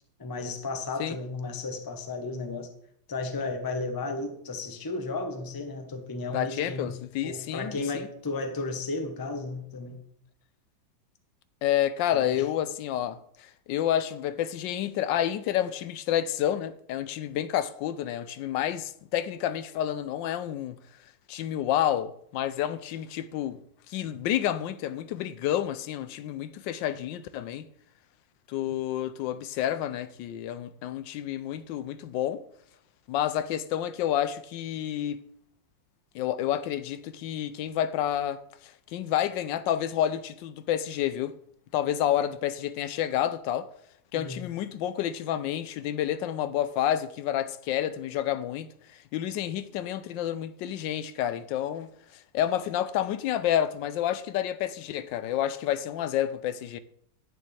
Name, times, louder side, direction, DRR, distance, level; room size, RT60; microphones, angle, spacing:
voice 1, 0.2-2.7 3.1-7.0 7.2-10.0 12.1-12.4 44.1-44.4, left 3 dB, 20° left, 0.6 m, -34 dB
voice 2, 6.3-8.1 11.6-20.8 21.3-23.6 23.9-27.7 28.5-32.4 33.1-35.2 36.1-41.4 41.7-43.7 44.1-56.8, left 11 dB, 80° left, 1.2 m, -29 dB
10.5 x 9.1 x 3.3 m
omnidirectional pair, 2.0 m